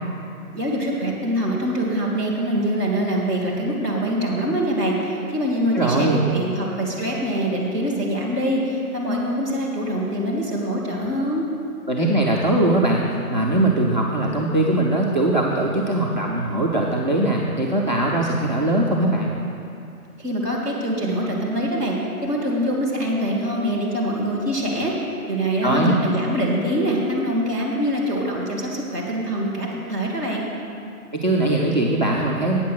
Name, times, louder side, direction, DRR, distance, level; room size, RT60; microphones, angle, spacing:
voice 1, 0.5-11.5 20.2-22.0 22.2-24.9 25.3-30.4, equal, 10° left, -10 dB, 1.3 m, -24 dB
voice 2, 5.7-6.2 11.9-19.3 25.6-25.9 31.1-32.6, right 1 dB, 30° right, -2 dB, 0.5 m, -21 dB
9.1 x 7.6 x 6.4 m, 2.6 s
hypercardioid pair, 170°, 46 cm